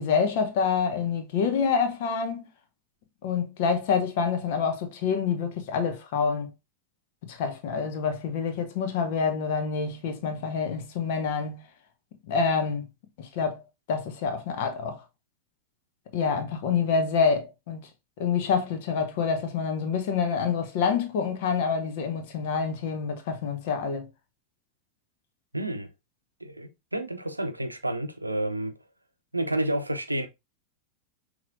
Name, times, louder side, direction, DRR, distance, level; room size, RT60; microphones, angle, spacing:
voice 1, 0.0-2.5 3.2-6.5 7.2-11.6 12.3-12.8 13.2-13.6 13.9-15.0 16.1-17.8 18.2-24.1, left 6 dB, 50° left, 0.9 m, -27 dB
voice 2, 25.5-25.9 26.4-28.7 29.3-30.3, right 1 dB, 85° right, 0.6 m, -30 dB
5.8 x 3.0 x 2.6 m
figure-of-eight pair, 90°, 0 cm